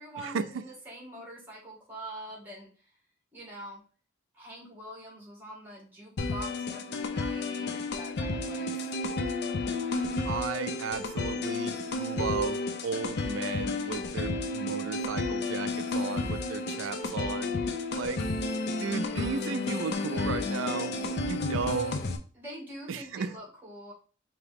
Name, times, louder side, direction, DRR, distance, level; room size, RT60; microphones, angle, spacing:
voice 1, 0.0-2.9 3.3-3.8 4.3-8.9 21.4-21.6 22.3-23.9, right 1 dB, 10° right, -3 dB, 1.7 m, -44 dB
sound 1, 6.2-22.2, left 2 dB, 60° left, 0.6 m, -32 dB
voice 2, 10.2-17.5 17.9-18.2 18.8-20.9 21.2-22.0 22.9-23.3, right 5 dB, 80° right, 12 dB, 0.4 m, -34 dB
4.7 x 2.9 x 3.4 m, 0.40 s
head